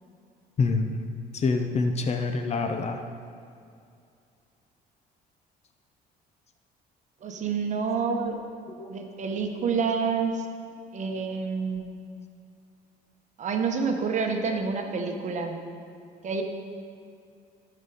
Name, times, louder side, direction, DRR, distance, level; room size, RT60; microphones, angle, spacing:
voice 1, 0.6-1.0 1.3-3.0 8.8-8.9 9.6-9.7, left 4 dB, 40° left, 6 dB, 0.7 m, -26 dB
voice 2, 7.2-8.4 8.9-10.5 10.9-11.9 13.4-15.6 16.2-16.4, right 5 dB, 45° right, 3 dB, 1.1 m, -28 dB
14.0 x 5.5 x 4.1 m, 2.4 s
cardioid pair, 110°, 17 cm